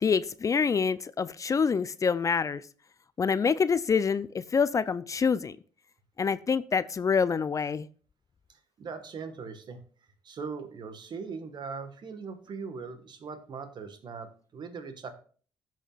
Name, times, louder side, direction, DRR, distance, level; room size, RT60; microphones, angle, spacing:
voice 1, 0.0-2.6 3.2-5.6 6.2-7.9, left 6 dB, 35° left, 17 dB, 0.5 m, -26 dB
voice 2, 8.5-9.8 10.2-15.1, right 5 dB, 50° right, 9 dB, 1.5 m, -40 dB
16.5 x 6.3 x 2.4 m, 0.43 s
hypercardioid pair, 50°, 9 cm